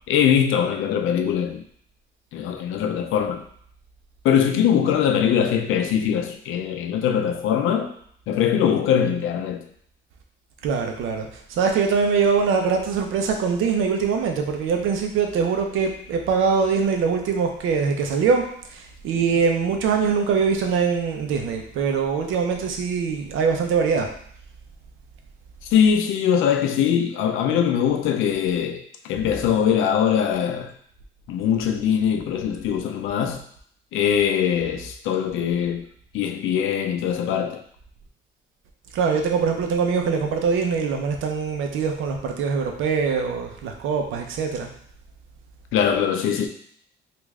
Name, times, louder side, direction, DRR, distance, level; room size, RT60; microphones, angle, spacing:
voice 1, 0.1-1.6 2.3-3.4 4.2-7.9 8.3-9.6 25.7-30.7 31.3-33.4 33.9-35.8 36.1-37.6 45.7-46.5, left 8 dB, 85° left, 0.5 m, -22 dB
voice 2, 10.6-24.1 38.9-44.7, right 5 dB, 85° right, 0.6 m, -23 dB
3.1 x 2.5 x 3.5 m
cardioid pair, 90°, 20 cm